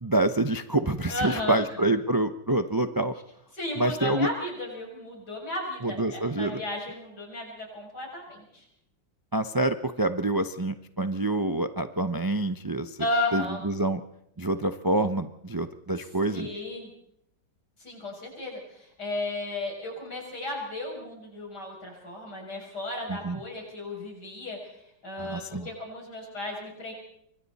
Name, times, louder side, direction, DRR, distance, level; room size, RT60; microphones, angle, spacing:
voice 1, 0.0-3.1 3.8-4.3 5.8-6.6 9.3-13.0 13.3-14.0 14.4-16.5 23.1-23.4 25.2-25.7, right 2 dB, 35° right, 9 dB, 0.3 m, -27 dB
voice 2, 1.1-1.6 3.5-8.7 13.0-13.6 16.0-16.9 17.8-26.9, left 2 dB, 60° left, 0 dB, 7.6 m, -34 dB
26.5 x 24.0 x 4.2 m, 0.74 s
omnidirectional pair, 2.0 m